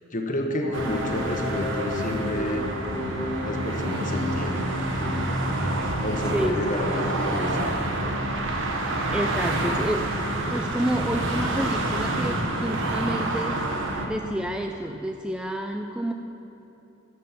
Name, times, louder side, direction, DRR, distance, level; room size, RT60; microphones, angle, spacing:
voice 1, 0.1-2.6 3.4-4.7 6.0-7.8, left 1 dB, 40° left, 2 dB, 1.2 m, -30 dB
sound 1, 0.6-14.6, left 1 dB, 90° left, 2.3 m, -34 dB
sound 2, 0.7-14.1, right 2 dB, 60° right, 1.1 m, -28 dB
voice 2, 6.3-6.7 9.1-10.1 10.5-13.6 14.1-16.1, right 1 dB, 5° right, 4 dB, 0.3 m, -29 dB
12.5 x 6.4 x 7.2 m, 3.0 s
head